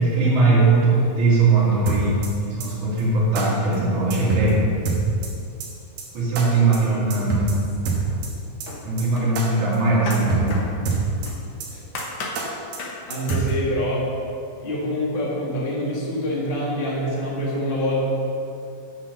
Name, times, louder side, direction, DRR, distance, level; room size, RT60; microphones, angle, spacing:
voice 1, 0.0-4.7 6.1-7.5 8.8-10.6, right 3 dB, 60° right, -9 dB, 3.9 m, -20 dB
sound 1, 1.9-2.3 2.6-2.7 3.0-3.1 3.4-3.5 3.7-3.8 4.1-4.5 4.9-5.3 5.6-5.7 6.0-6.1 6.4-6.5 6.7-6.8 7.1-7.5 7.9-8.3 8.6-8.7 9.0-9.1 9.4-9.5 9.7-9.8 10.1-10.5 10.9-11.3 11.6-11.7 12.0-12.1 12.4-12.5 12.7-12.8 13.1-13.5, right 6 dB, 80° right, 3.1 m, -26 dB
voice 2, 6.4-7.2 11.7-11.8 13.1-14.1 14.6-18.0, left 1 dB, 20° left, -5 dB, 1.6 m, -26 dB
sound 2, 7.5-8.3 8.7-11.5 11.9-12.4 12.8-13.0 13.3-13.5, left 3 dB, 80° left, 1.0 m, -35 dB
9.9 x 6.0 x 6.8 m, 2.6 s
omnidirectional pair, 3.9 m